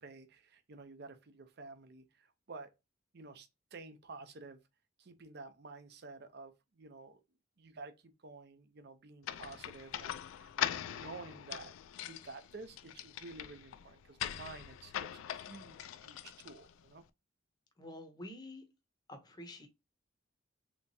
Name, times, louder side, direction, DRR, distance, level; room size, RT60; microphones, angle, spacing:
voice 1, 0.0-2.7 3.1-4.6 5.0-7.2 7.6-11.7 12.0-17.0, right 3 dB, 55° right, 0.6 m, -51 dB
sound 1, 9.2-16.9, left 10 dB, 90° left, 0.3 m, -42 dB
voice 2, 17.8-18.6 19.1-19.7, left 1 dB, 20° left, 0.6 m, -48 dB
3.3 x 2.9 x 2.7 m
head